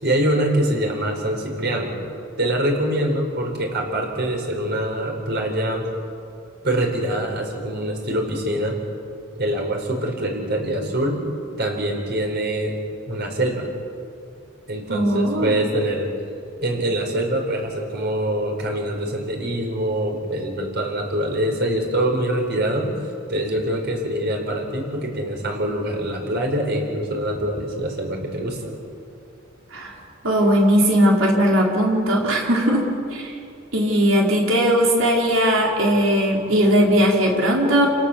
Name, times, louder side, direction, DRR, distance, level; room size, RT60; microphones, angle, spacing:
voice 1, 0.0-2.0 2.4-5.8 6.6-8.8 9.3-11.2 11.6-12.7 13.1-13.7 14.7-16.1 16.6-22.9 23.3-28.8, right 1 dB, 55° right, 1 dB, 4.9 m, -24 dB
voice 2, 14.9-15.7 29.7-29.9 30.2-33.3 33.7-37.9, equal, 75° right, -1 dB, 4.4 m, -18 dB
29.0 x 17.5 x 7.3 m, 2.6 s
head